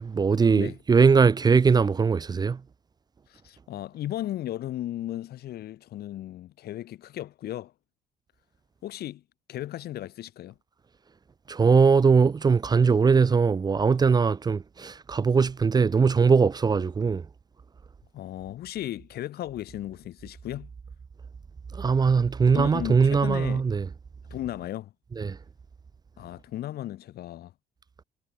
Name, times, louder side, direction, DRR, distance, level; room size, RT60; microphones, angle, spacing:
voice 1, 0.0-2.6 11.5-17.2 21.8-23.9 25.2-25.4, right 5 dB, 25° right, 0.6 m, -21 dB
voice 2, 3.3-7.7 8.8-9.2 9.5-10.5 18.1-20.7 22.5-23.7 24.3-24.9 26.2-27.5, left 13 dB, 70° left, 5.9 m, -35 dB
cardioid pair, 110°, 17 cm